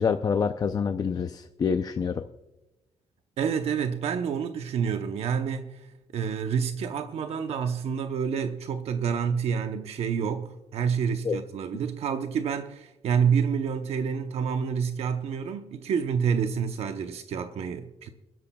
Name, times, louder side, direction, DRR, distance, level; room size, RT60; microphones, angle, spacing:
voice 1, 0.0-2.3 11.2-11.4, left 6 dB, 35° left, 0.5 m, -26 dB
voice 2, 3.4-5.9 6.1-18.1, right 7 dB, 70° right, 0.8 m, -28 dB
24.0 x 12.5 x 2.3 m
cardioid pair, 125°, 11 cm